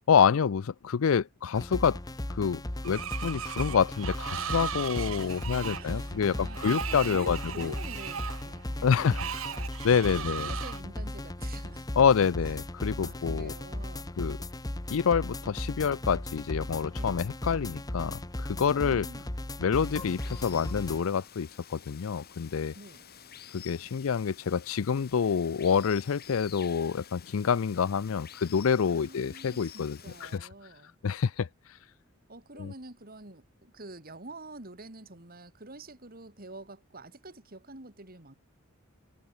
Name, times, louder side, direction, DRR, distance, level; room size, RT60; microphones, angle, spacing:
voice 1, 0.1-2.0 2.3-7.7 8.8-9.2 9.8-10.5 12.0-13.5 14.2-14.4 14.9-19.1 19.6-22.7 23.5-30.3 31.0-31.5 32.6-32.7, left 6 dB, 85° left, 0.5 m, -27 dB
sound 1, 1.5-21.0, left 1 dB, 20° left, 1.0 m, -37 dB
Screech, 2.8-10.8, right 8 dB, 90° right, 1.1 m, -38 dB
voice 2, 5.1-11.9 12.4-12.6 13.0-14.1 16.9-17.2 18.7-19.3 22.7-23.1 28.9-31.0 32.3-38.4, right 2 dB, 45° right, 3.5 m, -47 dB
Water, 19.7-30.4, left 9 dB, 50° left, 1.7 m, -50 dB
head